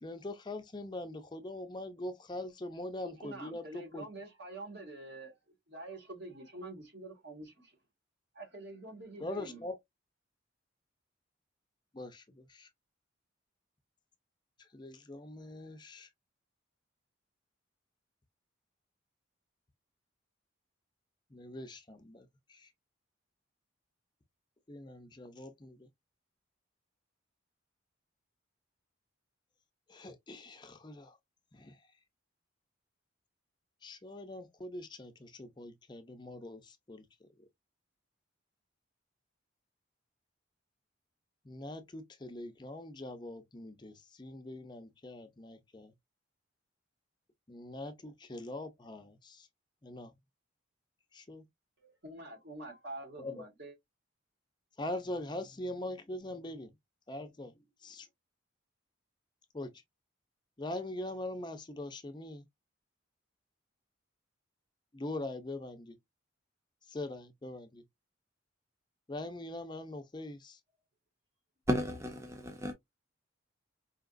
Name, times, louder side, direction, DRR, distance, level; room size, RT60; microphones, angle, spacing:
voice 1, 0.0-4.1 9.2-9.8 11.9-12.7 14.6-16.1 21.3-22.7 24.7-25.9 29.9-31.2 31.5-31.8 33.8-37.5 41.5-45.9 47.5-49.5 49.8-50.1 51.1-51.4 53.2-53.3 54.8-56.7 57.1-57.5 57.8-58.1 59.5-59.7 60.6-62.4 64.9-66.0 66.9-67.8 69.1-70.6, left 1 dB, 20° left, 0.5 m, -42 dB
voice 2, 3.0-5.4 5.7-7.8 8.3-9.6 51.8-53.7, right 2 dB, 55° right, 1.7 m, -46 dB
voice 3, 71.7-72.7, equal, 15° right, 0.7 m, -33 dB
4.8 x 2.8 x 2.4 m
head